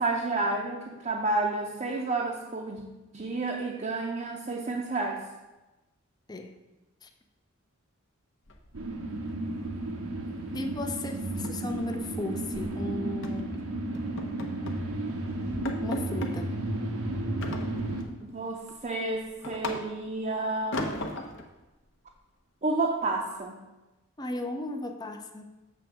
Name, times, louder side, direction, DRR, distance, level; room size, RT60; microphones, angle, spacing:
voice 1, 0.0-2.8 3.1-5.2 18.2-21.1 22.6-23.6, right 2 dB, 35° right, -1 dB, 0.6 m, -30 dB
recycled bin bottles, 8.5-9.3 9.6-9.8 10.1-10.4 10.6-10.7 11.1-12.7 13.2-13.5 13.9-14.9 15.2-15.3 15.6-16.4 17.4-18.1 18.6-20.2 20.7-21.5, left 1 dB, 60° left, 0.8 m, -37 dB
sound 1, 8.7-18.0, right 1 dB, 85° right, 0.9 m, -33 dB
voice 2, 10.5-13.6 15.8-16.6 24.2-25.5, left 2 dB, 20° left, 5 dB, 0.5 m, -35 dB
7.5 x 3.4 x 6.2 m, 1.1 s
head